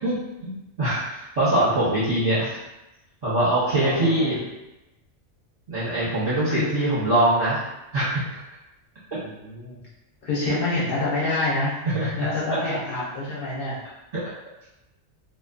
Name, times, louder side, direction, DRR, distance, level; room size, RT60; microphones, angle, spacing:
voice 1, 0.0-0.5 0.8-2.6 3.2-4.4 5.7-7.6 7.9-8.4 10.4-10.6 11.8-12.1 14.1-14.2, right 1 dB, 35° right, -10 dB, 0.8 m, -23 dB
voice 2, 3.7-4.4 6.5-6.7 9.2-9.8 10.2-11.7 12.0-13.8, left 2 dB, 55° left, -8 dB, 0.8 m, -27 dB
2.5 x 2.3 x 2.4 m, 0.95 s
omnidirectional pair, 1.2 m